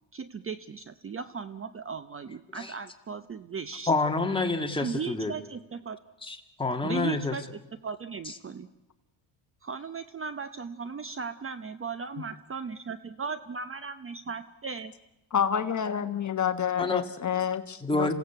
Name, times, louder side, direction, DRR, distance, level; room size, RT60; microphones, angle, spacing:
voice 1, 0.1-3.9 4.8-6.0 6.8-8.7 9.6-14.9, right 5 dB, 25° right, 12 dB, 0.8 m, -37 dB
voice 2, 3.9-5.3 6.2-7.3 8.3-8.4 16.8-17.0 17.8-18.1, left 3 dB, 10° left, 3 dB, 2.1 m, -28 dB
voice 3, 15.3-18.1, left 8 dB, 35° left, 8 dB, 1.2 m, -28 dB
27.0 x 16.5 x 8.2 m, 0.97 s
cardioid pair, 110°, 49 cm